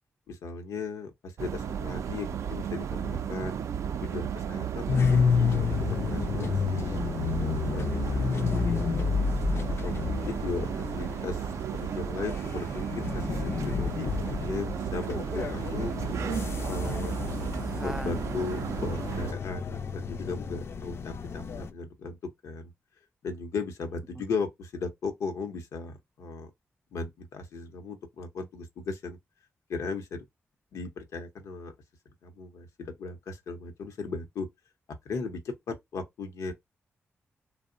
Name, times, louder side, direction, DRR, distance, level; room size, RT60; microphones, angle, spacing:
voice 1, 0.3-3.7 4.0-5.2 5.9-7.2 7.7-9.1 9.7-11.5 11.7-15.9 16.7-17.1 17.8-22.2 22.4-22.7 23.2-26.5 26.9-29.2 29.7-30.2 30.7-31.7 32.2-34.5 35.1-36.5, left 4 dB, 85° left, 0.7 m, -37 dB
sound 1, 1.4-19.3, right 8 dB, 75° right, 0.3 m, -34 dB
sound 2, 4.9-21.7, left 5 dB, 55° left, 0.4 m, -30 dB
voice 2, 16.5-18.4 24.1-24.3, right 1 dB, 5° right, 0.4 m, -42 dB
2.8 x 2.1 x 2.4 m
cardioid pair, 65°, 5 cm